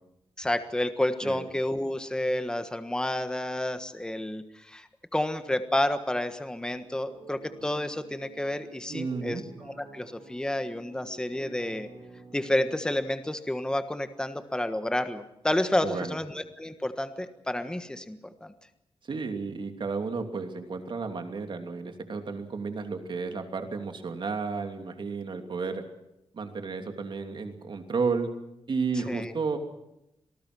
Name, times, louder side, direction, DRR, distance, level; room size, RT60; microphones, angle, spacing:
voice 1, 0.4-11.9 12.3-18.5 29.0-29.3, left 1 dB, 10° left, 9 dB, 1.4 m, -30 dB
sound 1, 6.8-12.9, right 4 dB, 70° right, 4.9 m, -50 dB
voice 2, 8.9-9.4 15.8-16.2 19.0-25.8 26.3-28.3 28.7-29.6, right 4 dB, 55° right, 6 dB, 2.8 m, -32 dB
27.0 x 19.0 x 6.2 m, 0.87 s
wide cardioid pair, 130°, 10 cm